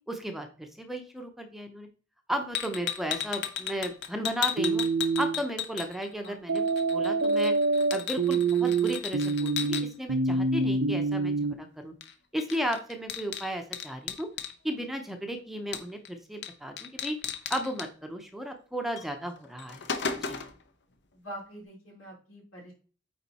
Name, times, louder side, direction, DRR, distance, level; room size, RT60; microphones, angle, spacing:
voice 1, 0.1-1.9 2.3-4.8 5.2-6.6 6.9-7.5 7.9-11.9 12.3-14.3 14.6-17.2 17.5-19.8 20.2-20.4, equal, ahead, 4 dB, 0.7 m, -34 dB
sound 1, 2.5-6.3 6.6-9.8 12.0-12.1 12.4-14.5 15.7-16.1 16.4-16.5 16.8-17.9 19.0-19.1 19.4-20.6, left 8 dB, 60° left, 0.9 m, -35 dB
sound 2, 4.6-5.4 6.5-11.5, right 3 dB, 75° right, 0.7 m, -26 dB
voice 2, 21.1-22.7, right 1 dB, 80° left, -4 dB, 4.0 m, -44 dB
8.9 x 4.0 x 4.1 m, 0.39 s
head